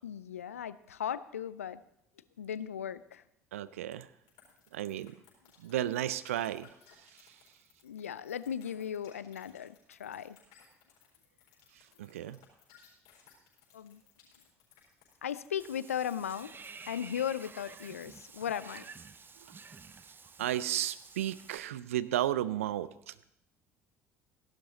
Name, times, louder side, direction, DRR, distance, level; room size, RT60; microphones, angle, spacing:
voice 1, 0.0-1.8 2.4-3.2 7.8-10.4 13.7-14.0 15.2-16.5 16.9-18.8, left 9 dB, 85° left, 17 dB, 0.4 m, -37 dB
voice 2, 3.5-4.1 4.7-5.1 5.6-6.7 12.0-12.4 20.4-23.3, right 12 dB, 75° right, 17 dB, 0.5 m, -33 dB
sound 1, 4.3-18.9, left 8 dB, 65° left, 4.3 m, -62 dB
Water / Bathtub (filling or washing), 15.6-21.6, right 5 dB, 30° right, 0.8 m, -51 dB
15.5 x 12.0 x 4.0 m, 0.78 s
figure-of-eight pair, 55°, 7 cm